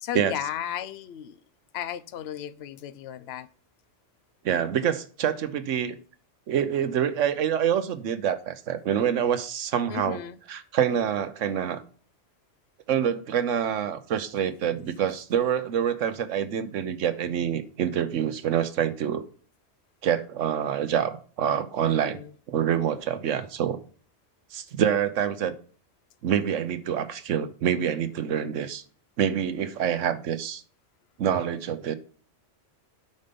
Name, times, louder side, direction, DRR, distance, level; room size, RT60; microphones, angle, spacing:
voice 1, 0.0-1.4 1.7-3.5 9.9-10.4 21.8-22.3, left 10 dB, 65° left, 0.8 m, -35 dB
voice 2, 4.4-6.0 6.5-10.2 10.5-11.8 12.9-19.3 20.0-22.2 22.5-23.8 24.5-25.5 26.2-28.8 29.2-30.6 31.2-31.9, right 9 dB, 85° right, 1.1 m, -26 dB
9.4 x 5.4 x 5.3 m
omnidirectional pair, 1.3 m